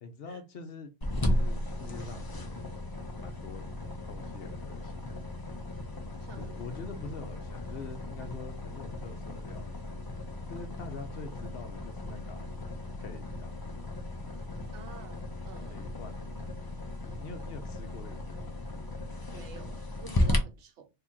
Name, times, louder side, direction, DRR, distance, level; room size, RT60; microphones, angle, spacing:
voice 1, 0.0-0.9 1.2-2.6 3.2-3.6 4.1-5.2 6.4-9.8 10.5-12.5 13.0-13.5 15.7-16.3 16.9-18.7, left 4 dB, 60° left, 0.8 m, -45 dB
sound 1, 1.0-20.4, left 1 dB, 25° left, 0.5 m, -36 dB
voice 2, 6.2-6.7 14.7-15.9 19.3-20.9, right 5 dB, 80° right, 1.0 m, -49 dB
2.8 x 2.8 x 3.6 m
omnidirectional pair, 1.2 m